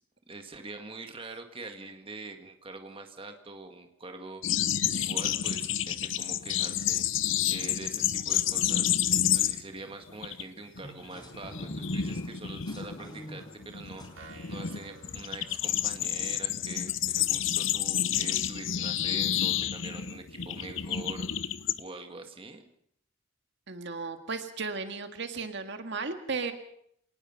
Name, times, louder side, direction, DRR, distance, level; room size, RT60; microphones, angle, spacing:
voice 1, 0.3-7.0 7.5-21.3 21.8-22.6, right 3 dB, 25° right, 5 dB, 1.8 m, -44 dB
sound 1, 4.4-9.8 10.1-10.4 10.8-21.8, left 10 dB, 65° left, 0.8 m, -29 dB
sound 2, 10.8-16.1, equal, 20° left, 4.8 m, -47 dB
sound 3, 14.2-16.1, right 3 dB, 80° right, 5.6 m, -51 dB
voice 2, 23.7-26.5, right 4 dB, 60° right, 7 dB, 1.8 m, -35 dB
26.5 x 19.0 x 5.7 m, 0.69 s
head